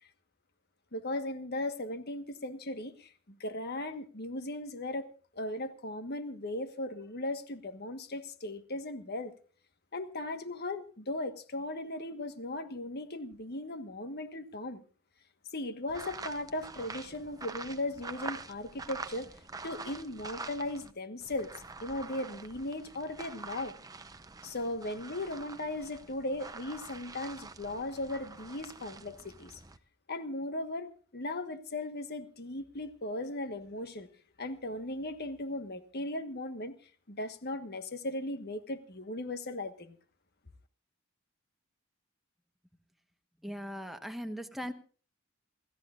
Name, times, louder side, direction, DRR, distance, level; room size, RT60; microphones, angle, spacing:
voice 1, 0.9-3.1 3.4-5.1 5.3-9.3 9.9-14.8 15.5-19.3 19.6-21.5 21.8-23.7 24.4-29.6 30.1-34.1 34.4-36.7 37.1-40.0, left 1 dB, 50° left, 9 dB, 1.4 m, -37 dB
sound 1, 15.9-20.9 21.2-29.8, right 3 dB, 20° right, 0.7 m, -46 dB
voice 2, 43.4-44.7, equal, ahead, 6 dB, 1.2 m, -39 dB
28.0 x 14.0 x 2.5 m, 0.40 s
head